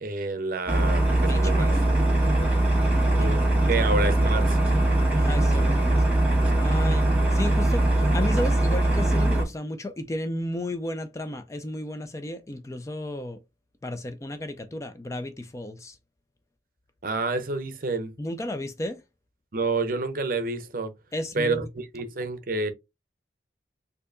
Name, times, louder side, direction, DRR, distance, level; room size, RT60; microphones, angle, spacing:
voice 1, 0.0-1.7 3.2-3.4 3.7-4.6 17.0-18.1 19.5-20.9 21.3-22.7, right 3 dB, 50° right, 0.6 m, -28 dB
sound 1, 0.7-9.4, right 1 dB, 10° right, 1.7 m, -21 dB
voice 2, 1.2-2.0 3.8-3.9 5.2-5.9 6.6-13.4 13.8-16.0 18.2-19.0 21.1-21.7, left 1 dB, 15° left, 0.3 m, -33 dB
4.3 x 2.7 x 2.5 m
head